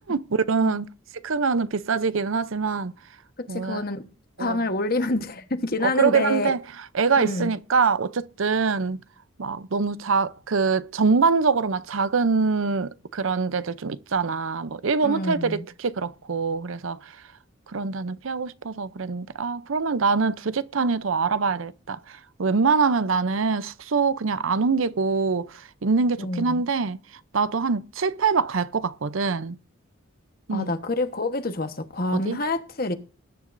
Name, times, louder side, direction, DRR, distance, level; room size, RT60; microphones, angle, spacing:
voice 1, 0.1-0.9 1.2-2.9 3.5-3.8 4.4-4.6 5.8-6.6 6.9-9.0 9.4-17.1 17.7-27.0 27.3-29.6 30.5-30.7 32.1-32.4, right 4 dB, 75° right, 0.6 m, -24 dB
voice 2, 3.4-4.0 4.4-6.5 7.2-7.5 15.0-15.6 26.2-26.6 30.5-32.9, left 2 dB, 45° left, 1.2 m, -27 dB
20.5 x 10.5 x 2.6 m
head